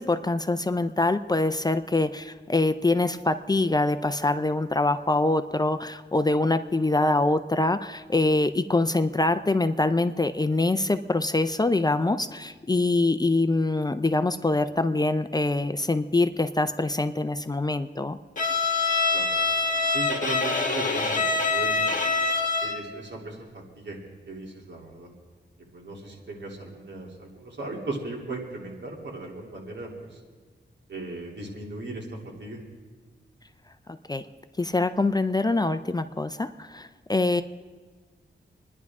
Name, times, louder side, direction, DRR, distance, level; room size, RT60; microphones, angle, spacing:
voice 1, 0.0-18.2 34.1-34.2 34.6-37.4, left 2 dB, 20° left, 11 dB, 0.5 m, -24 dB
Bowed string instrument, 18.4-22.9, left 3 dB, 45° left, 1.8 m, -25 dB
voice 2, 19.9-22.0 22.6-25.1 25.7-30.1 30.9-32.6, right 2 dB, 70° right, -2 dB, 2.9 m, -37 dB
26.5 x 10.5 x 3.6 m, 1.4 s
wide cardioid pair, 110°, 19 cm